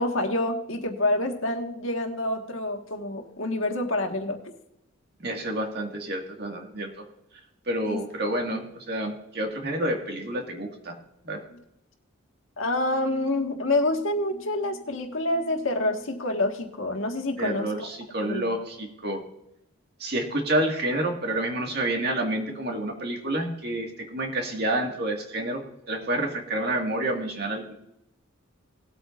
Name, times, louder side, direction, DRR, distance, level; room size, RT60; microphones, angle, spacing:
voice 1, 0.0-4.4 7.8-8.0 8.4-8.6 12.6-17.9 18.2-18.5, left 1 dB, 70° left, 3 dB, 1.6 m, -27 dB
voice 2, 5.2-6.9 7.7-10.9 11.2-11.4 17.4-19.2 20.0-27.7, right 1 dB, 50° right, 2 dB, 2.0 m, -29 dB
19.0 x 8.5 x 2.5 m, 0.82 s
head